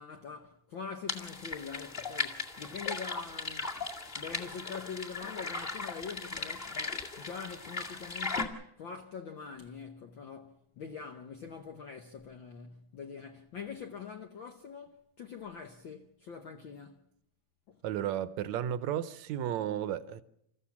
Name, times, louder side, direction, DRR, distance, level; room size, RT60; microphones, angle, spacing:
voice 1, 0.0-3.7 4.1-17.0 17.7-17.8, left 6 dB, 70° left, 1.2 m, -44 dB
sound 1, 1.1-8.5, left 3 dB, 20° left, 2.0 m, -37 dB
voice 2, 17.8-20.2, right 10 dB, 70° right, 2.1 m, -33 dB
27.5 x 14.5 x 7.2 m
omnidirectional pair, 3.5 m